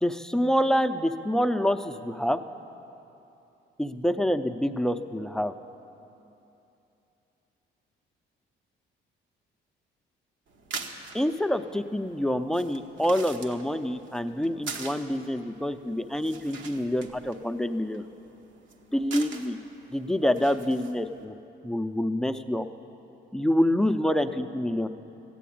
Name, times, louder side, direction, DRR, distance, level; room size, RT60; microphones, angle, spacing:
voice 1, 0.0-2.4 3.8-5.5 11.1-18.0 18.9-19.6 19.9-21.4 21.6-22.7 23.3-24.9, equal, 5° left, 8 dB, 0.6 m, -26 dB
sound 1, 10.5-21.2, right 4 dB, 75° right, 1.2 m, -44 dB
14.0 x 9.3 x 8.6 m, 2.8 s
cardioid pair, 90°, 20 cm